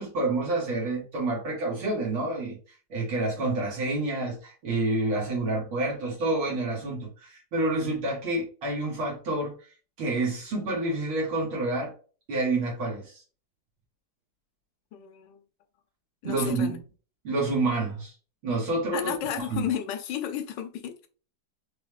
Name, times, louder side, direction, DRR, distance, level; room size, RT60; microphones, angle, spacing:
voice 1, 0.0-2.6 2.9-9.5 10.0-11.9 12.3-13.2 16.2-16.8 17.2-18.1 18.4-19.7, right 2 dB, 70° right, 2.4 m, -28 dB
voice 2, 14.9-15.4 16.2-16.8 18.9-21.1, left 9 dB, 70° left, 1.2 m, -33 dB
5.0 x 3.4 x 2.4 m
omnidirectional pair, 2.4 m